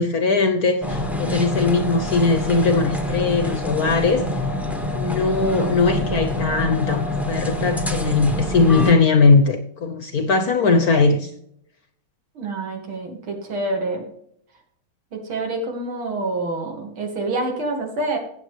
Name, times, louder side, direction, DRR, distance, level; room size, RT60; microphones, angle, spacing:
voice 1, 0.0-4.3 4.9-11.3, left 4 dB, 55° left, 1.1 m, -19 dB
sound 1, 0.8-8.9, left 1 dB, ahead, 0.6 m, -25 dB
voice 2, 12.3-14.0 15.1-18.2, right 2 dB, 75° right, 3.0 m, -27 dB
15.5 x 8.4 x 3.3 m
omnidirectional pair, 2.3 m